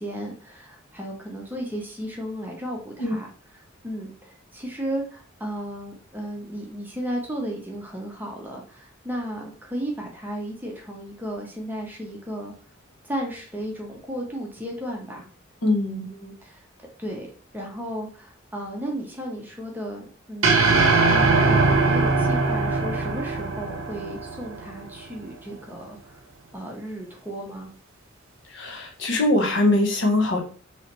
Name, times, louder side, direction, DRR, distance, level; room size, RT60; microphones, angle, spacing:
voice 1, 0.0-3.3 3.8-12.5 13.0-15.3 16.1-16.7 17.0-17.3 17.5-21.0 21.4-26.2 26.5-27.7, equal, 10° right, -1 dB, 0.7 m, -34 dB
voice 2, 15.6-16.1 28.5-30.4, left 2 dB, 60° left, 3 dB, 0.7 m, -22 dB
sound 1, 20.4-24.8, right 3 dB, 75° right, 0.6 m, -21 dB
3.1 x 2.9 x 2.9 m, 0.40 s
head